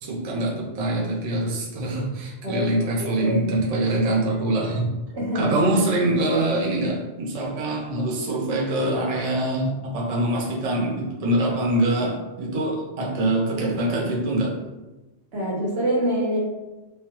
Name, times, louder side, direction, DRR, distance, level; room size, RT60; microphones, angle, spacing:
voice 1, 0.0-4.9 5.3-14.6, right 1 dB, 45° right, -3 dB, 0.5 m, -24 dB
voice 2, 3.0-3.4 5.1-5.5 15.3-16.4, equal, 65° right, -4 dB, 1.1 m, -25 dB
3.2 x 2.2 x 2.8 m, 1.1 s
omnidirectional pair, 1.2 m